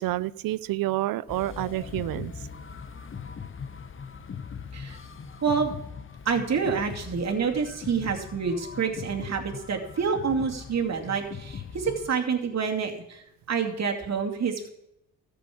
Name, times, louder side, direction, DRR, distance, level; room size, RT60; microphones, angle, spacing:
voice 1, 0.0-2.3, right 16 dB, 90° right, 19 dB, 0.6 m, -29 dB
sound 1, 1.3-12.1, left 6 dB, 40° left, 0.9 m, -40 dB
voice 2, 5.4-5.7 6.2-14.7, right 6 dB, 50° right, 2 dB, 2.4 m, -28 dB
13.5 x 7.0 x 8.4 m, 0.81 s
cardioid pair, 90°, 33 cm